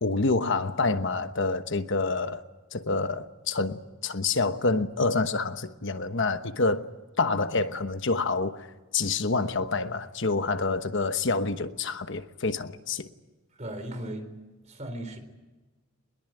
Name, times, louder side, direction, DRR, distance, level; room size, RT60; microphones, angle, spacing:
voice 1, 0.0-2.4 2.7-6.9 7.2-8.7 8.9-13.1, left 3 dB, 60° left, 1.1 m, -27 dB
voice 2, 13.5-14.3 14.6-15.2, right 1 dB, 35° right, 3.9 m, -37 dB
22.5 x 21.5 x 9.1 m
head